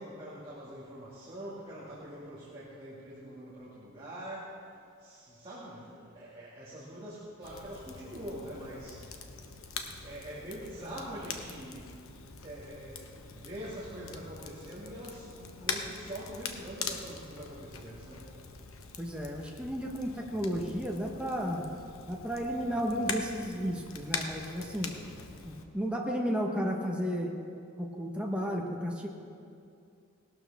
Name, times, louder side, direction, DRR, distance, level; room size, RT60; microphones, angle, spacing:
voice 1, 0.0-4.6 5.0-9.2 10.0-12.0 12.4-18.3, equal, 25° right, -9 dB, 2.1 m, -44 dB
Crackle, 7.4-25.6, left 5 dB, 70° left, 1.0 m, -43 dB
voice 2, 19.0-21.7 22.1-24.9 25.5-27.3 27.8-29.1, equal, 5° right, -1 dB, 1.0 m, -33 dB
18.5 x 12.0 x 3.5 m, 2.4 s
head